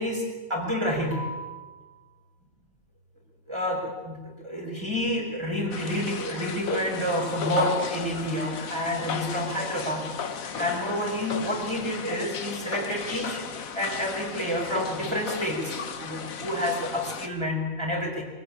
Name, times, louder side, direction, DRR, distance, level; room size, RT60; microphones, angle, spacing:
voice 1, 0.0-2.0 3.5-10.1 10.6-13.5 13.7-18.2, equal, 20° right, -1 dB, 5.4 m, -29 dB
sound 1, 5.7-17.3, left 6 dB, 90° left, 1.6 m, -35 dB
24.5 x 15.0 x 9.9 m, 1.3 s
omnidirectional pair, 1.4 m